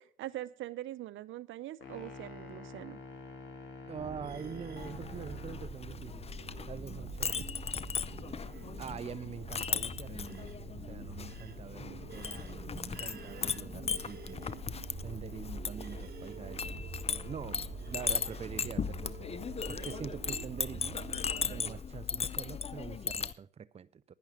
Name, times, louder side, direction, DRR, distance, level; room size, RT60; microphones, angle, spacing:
voice 1, 0.0-3.0, right 14 dB, 80° right, 0.7 m, -42 dB
sound 1, 1.8-5.7, left 3 dB, 75° left, 3.7 m, -47 dB
voice 2, 3.9-6.2 6.7-7.5 8.8-14.8 15.0-21.0 21.5-24.1, right 7 dB, 30° right, 0.5 m, -45 dB
sound 2, 4.0-21.8, right 6 dB, 50° right, 1.7 m, -46 dB
Chink clink, 4.8-23.3, left 6 dB, 30° left, 0.6 m, -38 dB
10.5 x 10.5 x 5.9 m
cardioid pair, 90°, 20 cm